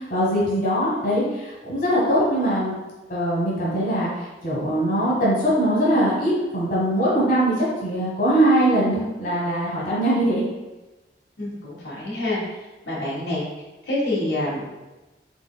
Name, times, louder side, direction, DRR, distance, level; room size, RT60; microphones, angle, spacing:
voice 1, 0.0-2.8 3.1-4.1 4.4-10.4, right 1 dB, 50° left, -6 dB, 1.2 m, -21 dB
voice 2, 11.4-12.4 12.8-13.4 13.9-14.7, left 1 dB, 75° left, -6 dB, 1.2 m, -26 dB
4.3 x 4.2 x 2.2 m, 1.1 s
head